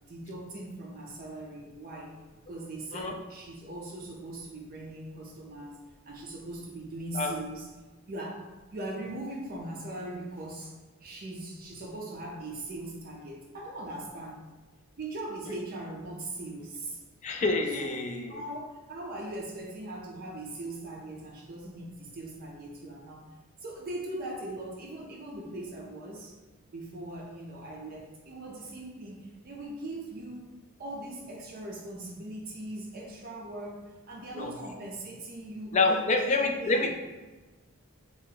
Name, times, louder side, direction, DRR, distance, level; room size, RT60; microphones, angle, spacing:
voice 1, 0.1-2.2 2.5-5.8 6.1-7.7 8.1-10.8 11.0-14.4 15.0-17.0 17.8-18.0 18.3-23.2 23.6-26.3 26.7-36.9, right 1 dB, 40° right, -1 dB, 0.4 m, -40 dB
voice 2, 17.2-18.4 34.4-34.5 35.7-36.9, left 3 dB, 35° left, 4 dB, 0.3 m, -27 dB
2.8 x 2.5 x 3.7 m, 1.2 s
head